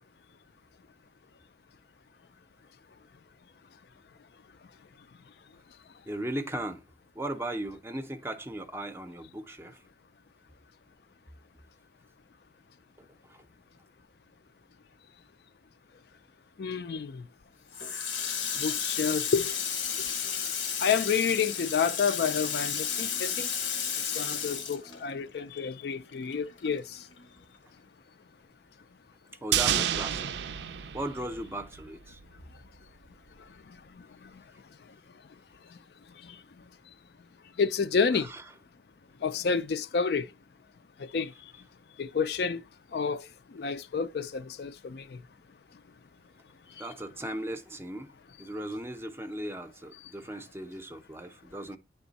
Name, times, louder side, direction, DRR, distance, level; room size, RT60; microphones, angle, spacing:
voice 1, 6.1-6.8 7.1-9.8 13.0-13.5 29.4-30.3 30.9-32.2 38.1-38.4 46.8-48.1 48.4-51.8, right 1 dB, 15° right, 0.5 m, -37 dB
voice 2, 16.6-17.2 18.6-19.5 20.8-23.5 24.2-26.8 37.6-38.3 39.2-40.3 41.1-41.3 42.0-42.6 42.9-43.2 43.5-45.0, left 6 dB, 60° left, 0.4 m, -29 dB
Water tap faucet, 17.7-25.6 25.9-27.2, left 7 dB, 90° left, 1.2 m, -33 dB
sound 1, 29.5-31.9 32.2-32.3, right 10 dB, 70° right, 0.4 m, -29 dB
9.1 x 3.5 x 4.0 m
head